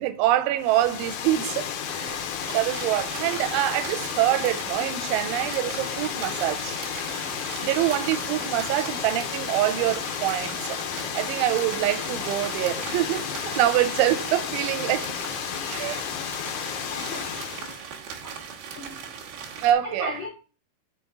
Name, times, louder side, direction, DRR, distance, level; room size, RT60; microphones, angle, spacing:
voice 1, 0.0-2.3 2.5-6.8 7.6-10.8 11.1-15.1 15.6-16.0 19.6-20.1, right 13 dB, 85° right, 3.0 m, -25 dB
Water, 0.6-17.8, left 8 dB, 85° left, 3.2 m, -32 dB
sound 1, 2.4-19.7, right 7 dB, 65° right, 2.5 m, -40 dB
voice 2, 16.9-17.2 18.2-18.3 18.7-18.9 19.8-20.3, equal, 45° left, 1.8 m, -35 dB
6.0 x 5.9 x 3.6 m
omnidirectional pair, 5.4 m